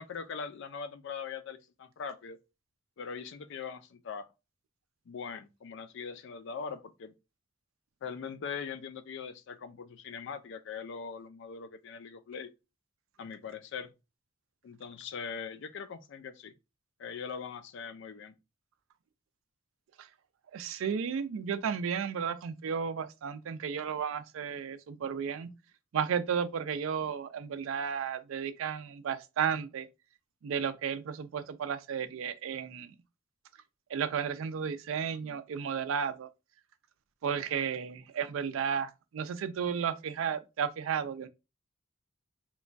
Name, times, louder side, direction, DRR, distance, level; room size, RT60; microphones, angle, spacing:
voice 1, 0.0-2.4 3.0-4.3 5.1-7.1 8.0-12.5 13.2-13.9 14.6-16.5 17.0-18.3, left 6 dB, 60° left, 0.4 m, -41 dB
voice 2, 20.5-25.5 25.9-29.9 30.4-32.9 33.9-36.3 37.2-41.3, right 7 dB, 75° right, 0.3 m, -33 dB
2.9 x 2.2 x 2.5 m
head